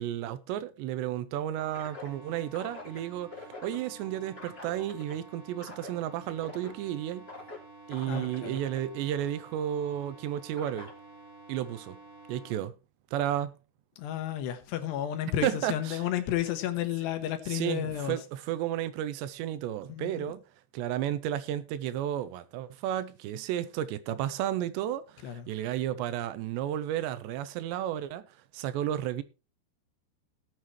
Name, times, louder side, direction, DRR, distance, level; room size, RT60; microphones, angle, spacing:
voice 1, 0.0-7.3 7.9-10.9 11.5-12.0 12.3-12.7 13.1-13.5 15.4-16.0 17.5-20.4 20.7-28.2 28.5-29.2, right 11 dB, 80° right, 2.9 m, -32 dB
sound 1, 1.6-12.5, equal, 15° left, 3.5 m, -47 dB
voice 2, 8.1-8.6 14.0-18.2 19.9-20.3 25.2-25.5, left 11 dB, 75° left, 3.2 m, -32 dB
18.5 x 7.4 x 3.2 m
omnidirectional pair, 5.2 m